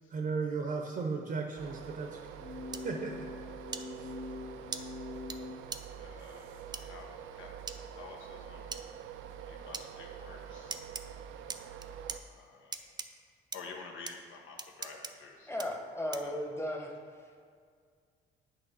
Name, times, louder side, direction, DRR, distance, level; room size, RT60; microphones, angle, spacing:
voice 1, 0.1-2.2 2.8-3.1 4.0-4.1, right 4 dB, 50° right, 3 dB, 0.7 m, -35 dB
sound 1, 1.6-12.2, right 8 dB, 90° right, 0.4 m, -46 dB
sound 2, 2.4-5.6, left 3 dB, 45° left, 0.5 m, -43 dB
sound 3, 2.7-2.8 3.7-3.8 4.7-4.8 5.3-5.4 5.7-5.8 6.7-6.8 7.7-7.8 8.7-8.8 9.7-9.9 10.7-11.0 11.5-12.2 12.7-13.1 13.5-13.6 14.1-14.2 14.6-15.1 15.6-15.7 16.1-16.4, right 4 dB, 20° right, 0.4 m, -39 dB
voice 2, 6.0-7.5 8.0-8.9 9.5-10.9 12.2-13.1 13.5-15.6 16.1-16.3, left 4 dB, 85° left, 1 dB, 1.0 m, -50 dB
voice 3, 15.5-16.9, left 1 dB, 10° left, 1 dB, 1.0 m, -35 dB
8.6 x 3.1 x 5.4 m, 2.1 s
cardioid pair, 90°, 20 cm